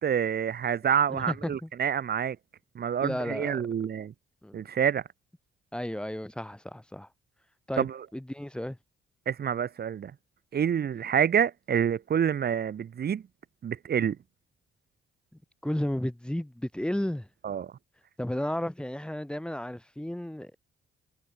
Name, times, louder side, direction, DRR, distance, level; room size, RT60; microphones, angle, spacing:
voice 1, 0.0-2.4 2.8-4.1 4.5-5.0 7.8-8.0 9.3-10.1 10.5-13.2 13.6-14.2 17.4-17.7, right 8 dB, 55° right, 2.0 m, -27 dB
voice 2, 1.1-1.7 3.0-3.6 4.4-4.6 5.7-7.1 7.7-7.9 8.1-8.8 15.6-17.3 18.2-20.6, left 1 dB, 5° left, 3.6 m, -33 dB
cardioid pair, 90°, 20 cm